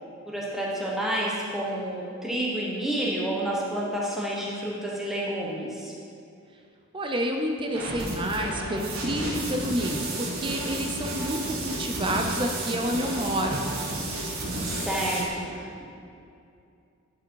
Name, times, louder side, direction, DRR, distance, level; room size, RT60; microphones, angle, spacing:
voice 1, 0.3-5.9 14.7-15.8, right 1 dB, ahead, -5 dB, 1.1 m, -29 dB
voice 2, 6.9-13.6, equal, 25° right, 3 dB, 0.6 m, -29 dB
sound 1, 7.7-15.3, right 2 dB, 75° right, 1.7 m, -32 dB
10.5 x 5.0 x 4.7 m, 2.5 s
head